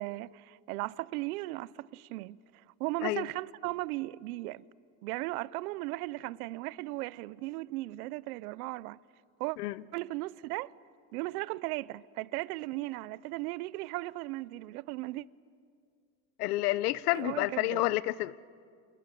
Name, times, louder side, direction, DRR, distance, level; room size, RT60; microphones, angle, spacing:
voice 1, 0.0-2.4 2.8-4.6 5.0-9.0 9.4-9.6 9.9-10.7 11.1-15.2 17.1-17.8, right 19 dB, 75° right, 0.7 m, -36 dB
voice 2, 16.4-18.5, left 17 dB, 85° left, 0.9 m, -30 dB
28.5 x 19.5 x 9.1 m
supercardioid pair, 155°, 45 cm